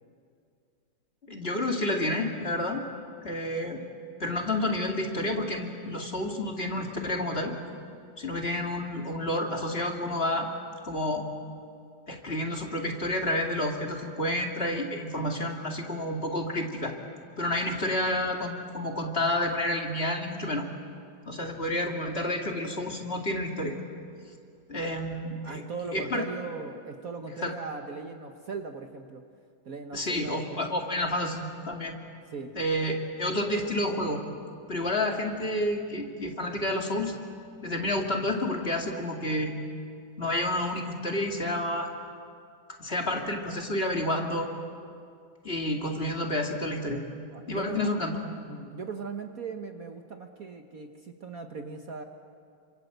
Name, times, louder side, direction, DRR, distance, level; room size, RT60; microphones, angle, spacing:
voice 1, 1.3-2.8 3.2-3.8 4.2-7.5 8.2-10.5 10.8-11.3 12.1-17.0 17.4-20.6 21.3-23.8 24.7-25.6 25.9-26.2 27.4-27.5 29.9-32.0 32.5-34.2 34.7-37.2 37.6-39.5 40.2-41.9 42.8-44.5 45.4-47.0 47.5-48.2, left 1 dB, 30° left, 2 dB, 2.5 m, -30 dB
voice 2, 25.4-29.2 29.6-30.6 32.3-32.5 47.3-47.8 48.5-52.0, right 4 dB, 50° right, 5 dB, 1.5 m, -39 dB
28.5 x 26.0 x 8.0 m, 2.3 s
omnidirectional pair, 2.2 m